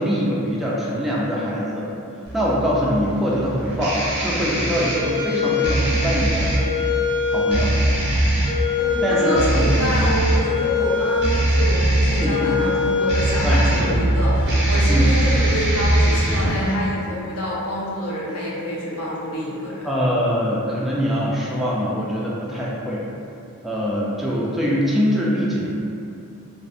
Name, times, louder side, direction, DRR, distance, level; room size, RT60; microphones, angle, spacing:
voice 1, 0.0-1.9 2.3-6.5 7.3-7.7 9.0-9.6 9.9-10.0 12.2-12.6 13.4-13.9 14.9-15.2 19.8-23.0 23.6-25.7, equal, ahead, -7 dB, 0.3 m, -23 dB
sound 1, 2.2-16.7, equal, 50° right, 0.5 m, -21 dB
voice 2, 8.8-19.9, equal, 70° left, -6 dB, 0.6 m, -27 dB
2.4 x 2.1 x 2.6 m, 2.6 s
head